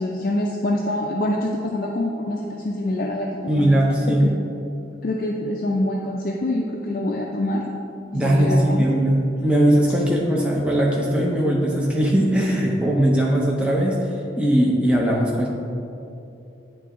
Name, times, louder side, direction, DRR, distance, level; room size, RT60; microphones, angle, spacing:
voice 1, 0.0-3.3 3.6-3.8 4.1-4.3 5.0-7.6 8.1-8.9, left 1 dB, 45° left, -1 dB, 0.4 m, -25 dB
voice 2, 3.5-4.3 8.1-15.5, right 1 dB, 5° right, -4 dB, 0.6 m, -20 dB
9.4 x 3.4 x 3.7 m, 2.7 s
head